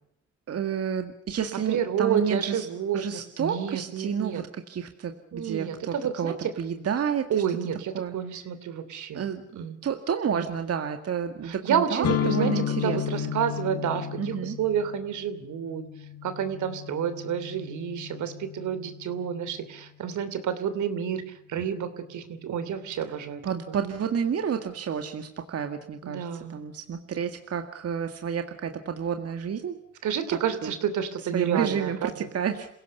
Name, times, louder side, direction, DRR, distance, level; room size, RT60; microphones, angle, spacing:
voice 1, 0.5-2.7 2.9-7.3 7.9-8.2 9.1-9.5 9.8-13.3 14.2-14.6 23.4-29.8 30.3-30.7 31.3-32.7, right 7 dB, 55° right, 6 dB, 2.0 m, -30 dB
voice 2, 1.7-4.4 5.3-6.5 7.3-9.2 9.6-9.8 10.3-10.5 11.4-12.5 12.8-15.8 16.2-21.2 21.5-23.4 26.0-26.6 30.0-32.3, right 8 dB, 75° right, 11 dB, 3.0 m, -30 dB
sound 1, 12.0-19.8, left 10 dB, 55° left, 1.2 m, -33 dB
27.5 x 17.0 x 6.8 m, 0.77 s
cardioid pair, 90°, 30 cm